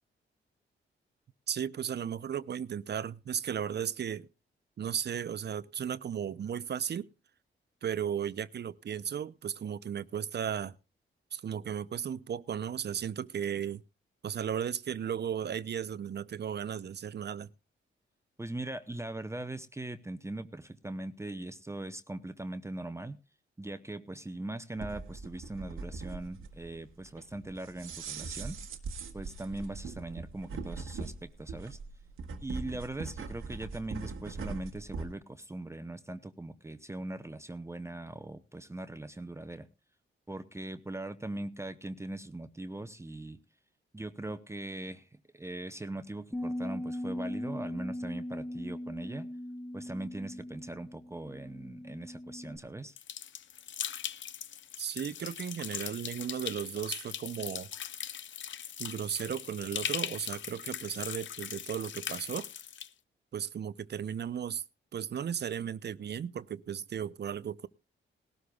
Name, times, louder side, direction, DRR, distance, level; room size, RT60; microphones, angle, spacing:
voice 1, 1.5-4.3 4.8-7.1 7.8-10.7 11.3-13.8 14.2-17.5 54.8-57.7 58.8-62.5 63.3-64.6 64.9-67.7, right 8 dB, 55° right, 0.6 m, -35 dB
voice 2, 18.4-23.2 23.6-28.6 29.1-31.8 32.4-39.7 40.3-43.4 43.9-49.3 49.7-53.0, right 2 dB, 15° right, 0.8 m, -40 dB
sound 1, 24.8-35.1, right 4 dB, 80° right, 1.4 m, -41 dB
Bass guitar, 46.3-52.6, left 1 dB, 5° left, 1.1 m, -39 dB
sound 2, 53.0-62.9, left 9 dB, 65° left, 0.6 m, -40 dB
19.0 x 13.0 x 2.3 m
cardioid pair, 80°, 21 cm